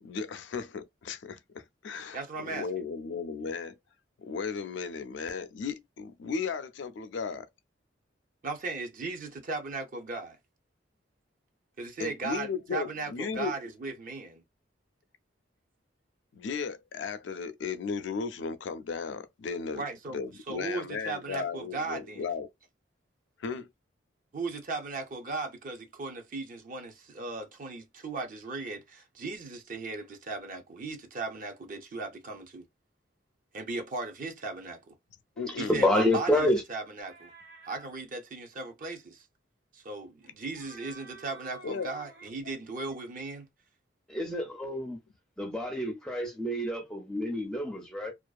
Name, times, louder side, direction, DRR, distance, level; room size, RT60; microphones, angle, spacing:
voice 1, 0.0-3.8 4.2-7.5 12.0-13.5 16.3-19.8 20.1-22.5 23.4-23.7 35.4-35.7 41.6-41.9, left 5 dB, 70° left, 0.4 m, -35 dB
voice 2, 2.1-2.7 8.4-10.4 11.8-14.4 19.7-20.2 20.5-22.3 24.3-32.7 33.5-34.8 35.6-37.3 37.6-39.3 39.7-43.5, right 3 dB, 45° right, 0.5 m, -37 dB
voice 3, 35.6-36.6 44.1-45.0 45.4-48.1, left 1 dB, 5° left, 0.4 m, -28 dB
sound 1, 37.0-37.9 40.2-42.4, right 3 dB, 70° right, 1.3 m, -51 dB
2.4 x 2.3 x 2.3 m
head